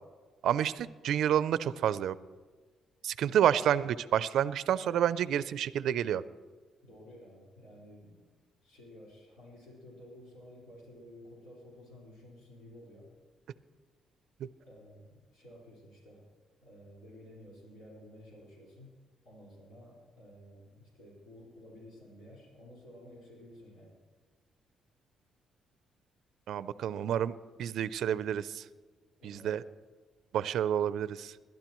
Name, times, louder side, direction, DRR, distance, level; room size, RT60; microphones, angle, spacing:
voice 1, 0.4-2.2 3.0-6.2 26.5-27.3 27.6-28.6 29.2-29.6 30.3-31.3, right 10 dB, 75° right, 16 dB, 0.4 m, -29 dB
voice 2, 6.8-8.2 8.6-13.1 14.6-16.3 16.6-18.9 19.2-23.9 29.2-29.7, left 1 dB, 90° left, -4 dB, 4.8 m, -53 dB
21.0 x 12.0 x 3.1 m, 1.4 s
cardioid pair, 90°, 0 cm